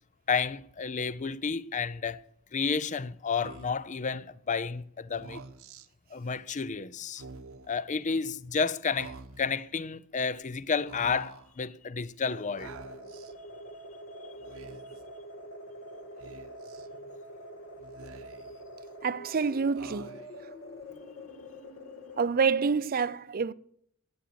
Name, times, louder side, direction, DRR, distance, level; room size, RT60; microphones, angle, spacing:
voice 1, 0.3-2.2 2.5-5.4 6.1-7.2 7.7-12.7, left 5 dB, 35° left, 0.5 m, -31 dB
Speech, 3.4-3.9 5.1-5.9 7.1-7.7 8.9-9.6 10.9-11.5 12.6-13.3 14.4-15.0 16.2-16.9 17.8-18.6 19.8-20.5, right 3 dB, 65° right, 1.0 m, -47 dB
sound 1, 12.3-22.3, equal, 60° left, 2.0 m, -45 dB
voice 2, 19.0-20.1 22.2-23.5, right 5 dB, 40° right, 0.5 m, -27 dB
14.5 x 8.9 x 6.9 m
head